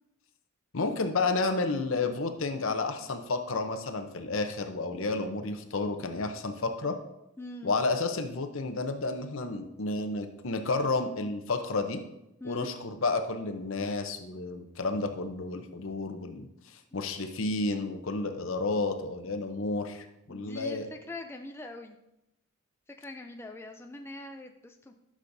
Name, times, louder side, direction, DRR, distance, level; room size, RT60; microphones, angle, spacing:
voice 1, 0.7-6.9 7.6-12.0 12.4-16.5 16.7-20.9, left 3 dB, 70° left, 6 dB, 0.8 m, -31 dB
voice 2, 7.4-7.7 12.4-12.7 20.3-22.0 22.9-24.9, left 1 dB, 10° left, 4 dB, 0.3 m, -42 dB
11.5 x 6.4 x 2.7 m, 0.88 s
head